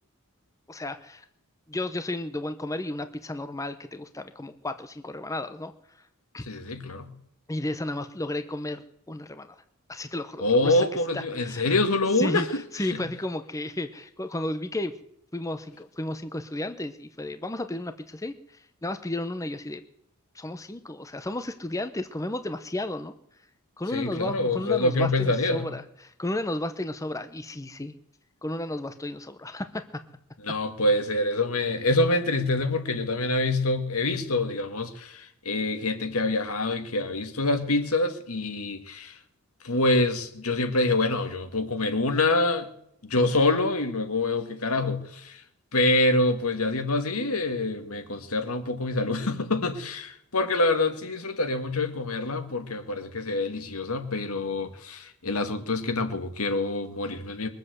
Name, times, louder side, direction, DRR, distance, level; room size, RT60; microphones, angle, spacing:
voice 1, 0.7-1.2 1.7-5.7 6.3-6.5 7.5-9.6 9.9-10.8 11.1-11.6 12.2-12.4 12.7-14.9 15.3-19.8 20.3-23.1 23.8-27.9 28.4-29.8, left 1 dB, 15° left, 0.7 m, -33 dB
voice 2, 6.4-7.1 10.4-13.0 23.9-25.7 30.4-39.2 39.6-42.7 43.0-45.4 45.7-57.5, left 2 dB, 80° left, 2.0 m, -26 dB
22.0 x 7.7 x 8.0 m
head